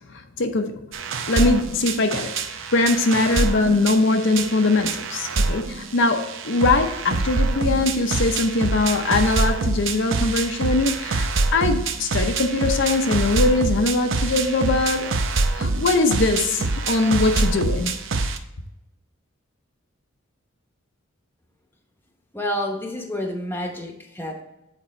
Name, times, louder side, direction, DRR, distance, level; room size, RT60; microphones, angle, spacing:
voice 1, 0.1-0.9 1.3-2.4 2.7-15.2 15.6-17.9, left 2 dB, 65° left, 0.7 m, -21 dB
sound 1, 0.9-18.4, right 3 dB, 65° right, 0.6 m, -25 dB
voice 2, 22.3-24.4, left 1 dB, 10° left, 0.9 m, -29 dB
8.1 x 4.1 x 4.3 m
head